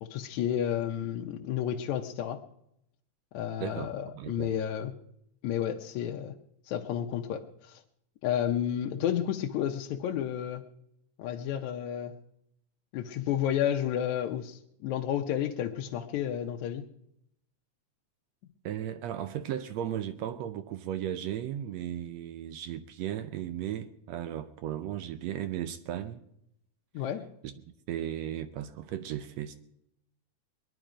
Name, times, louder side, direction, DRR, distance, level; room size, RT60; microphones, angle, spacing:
voice 1, 0.0-2.4 3.3-4.9 5.4-6.3 6.7-7.8 8.2-10.6 11.2-12.1 12.9-16.9 26.9-27.3, left 10 dB, 75° left, 2.0 m, -31 dB
voice 2, 3.6-4.5 18.6-26.2 27.4-27.5 27.9-29.6, right 11 dB, 75° right, 1.6 m, -36 dB
21.0 x 10.5 x 5.0 m
omnidirectional pair, 3.5 m